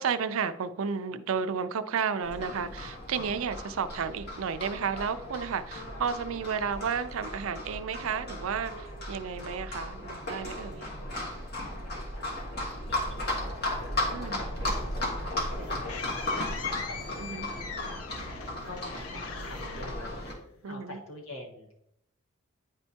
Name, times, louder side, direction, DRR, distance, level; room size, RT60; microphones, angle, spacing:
voice 1, 0.0-10.9 14.1-14.5 17.2-17.5 20.6-21.0, right 6 dB, 70° right, 11 dB, 0.4 m, -32 dB
Livestock farm animals working animals, 2.2-20.3, left 1 dB, 45° left, 1.6 m, -36 dB
voice 2, 11.6-12.3 12.9-14.9 15.1-18.4 18.6-20.3 20.7-21.7, left 1 dB, 70° left, -1 dB, 1.5 m, -47 dB
sound 1, 14.9-20.7, left 7 dB, 90° left, 0.6 m, -41 dB
9.6 x 4.4 x 2.8 m, 0.75 s
head